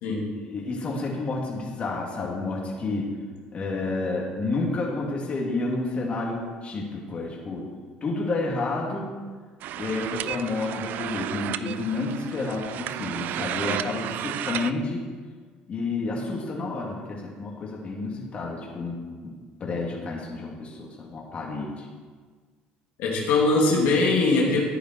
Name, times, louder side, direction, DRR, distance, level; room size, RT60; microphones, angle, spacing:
voice 1, 0.5-3.1 3.5-7.7 8.0-9.1 9.7-15.0 15.7-19.0 19.2-19.3 19.6-21.9, left 3 dB, 35° left, -2 dB, 3.2 m, -30 dB
sound 1, 9.6-14.7, right 12 dB, 65° right, 0.5 m, -33 dB
voice 2, 23.0-24.6, left 3 dB, 75° left, -3 dB, 2.8 m, -21 dB
13.5 x 10.0 x 4.8 m, 1.5 s
cardioid pair, 105°, 3 cm